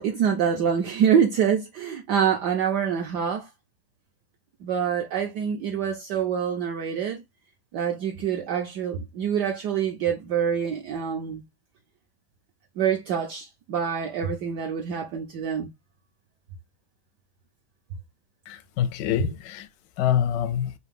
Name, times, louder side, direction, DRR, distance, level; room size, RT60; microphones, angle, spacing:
voice 1, 0.0-3.5 4.6-7.2 7.7-11.4 12.8-15.7, right 8 dB, 70° right, 1.1 m, -26 dB
voice 2, 18.5-19.7 20.0-20.7, left 10 dB, 75° left, 1.0 m, -25 dB
3.8 x 2.7 x 3.4 m
omnidirectional pair, 2.3 m